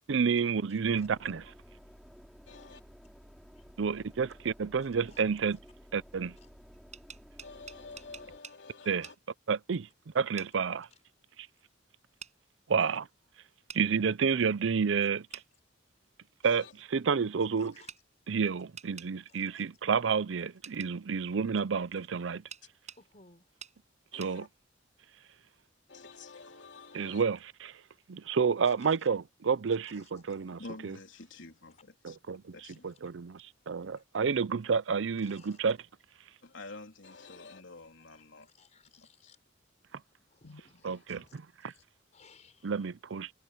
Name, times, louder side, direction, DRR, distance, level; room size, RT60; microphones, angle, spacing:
voice 1, 0.1-1.5 3.8-5.6 5.9-6.4 8.9-9.1 9.5-9.9 10.1-10.9 12.7-13.1 13.7-15.3 16.4-17.8 18.3-22.4 24.1-24.5 26.9-27.8 28.1-31.0 32.0-32.6 32.8-35.8 40.8-41.7 42.6-43.3, right 6 dB, 75° right, 0.5 m, -30 dB
sound 1, 0.8-8.4, equal, ahead, 2.7 m, -54 dB
voice 2, 2.5-2.8 7.4-9.1 12.8-13.0 16.4-16.7 24.1-24.5 25.9-27.2 37.0-37.6, left 4 dB, 65° left, 3.2 m, -50 dB
sound 2, 6.7-8.6 9.0-9.2 10.4-10.5 12.2-12.3 13.7-13.8 15.3-15.5 17.9-18.0 18.8-19.1 20.6-20.9 22.5-23.0 23.6-23.8 24.2-24.3, right 7 dB, 35° right, 7.6 m, -47 dB
voice 3, 23.0-23.4 28.7-28.8 35.3-35.5 38.6-39.4 40.3-40.4 41.1-41.4 42.1-42.7, left 4 dB, 35° left, 5.0 m, -57 dB
voice 4, 30.6-32.2 32.5-32.9 36.4-38.5 39.0-39.3 40.4-41.0, left 2 dB, 80° left, 3.6 m, -49 dB
head